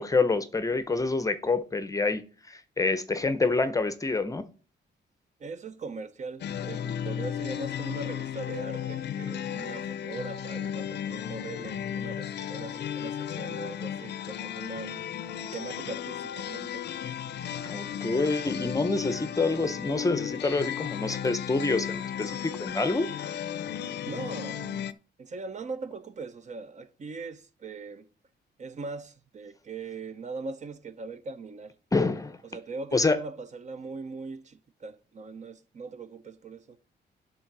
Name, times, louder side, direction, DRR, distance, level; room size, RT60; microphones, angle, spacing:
voice 1, 0.0-4.5 17.6-23.1 31.9-32.4 32.9-33.2, left 3 dB, 20° left, 0.6 m, -27 dB
voice 2, 5.4-15.0 15.5-16.9 24.1-24.6 25.2-28.1 28.6-31.8 32.4-36.8, right 4 dB, 40° right, 0.6 m, -40 dB
sound 1, 6.4-24.9, left 9 dB, 70° left, 0.5 m, -35 dB
10.5 x 4.0 x 5.9 m
wide cardioid pair, 145°, 18 cm